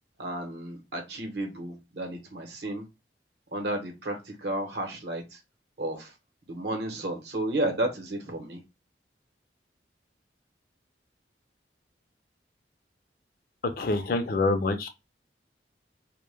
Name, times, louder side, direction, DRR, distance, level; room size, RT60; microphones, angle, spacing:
voice 1, 0.2-2.9 3.5-5.4 5.8-6.1 6.5-8.6, right 1 dB, 70° right, 0.8 m, -32 dB
voice 2, 13.6-14.9, left 3 dB, 55° left, 0.4 m, -26 dB
2.1 x 2.0 x 3.2 m
head